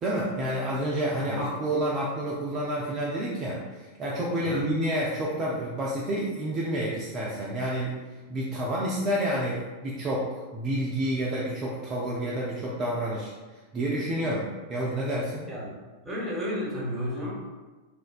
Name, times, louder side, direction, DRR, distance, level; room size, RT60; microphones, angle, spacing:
voice 1, 0.0-7.9 8.3-13.3 13.7-15.5, right 1 dB, 30° right, -4 dB, 0.3 m, -29 dB
voice 2, 16.0-17.3, equal, 5° right, -6 dB, 0.7 m, -32 dB
2.4 x 2.1 x 2.3 m, 1.3 s
figure-of-eight pair, 90°, 0 cm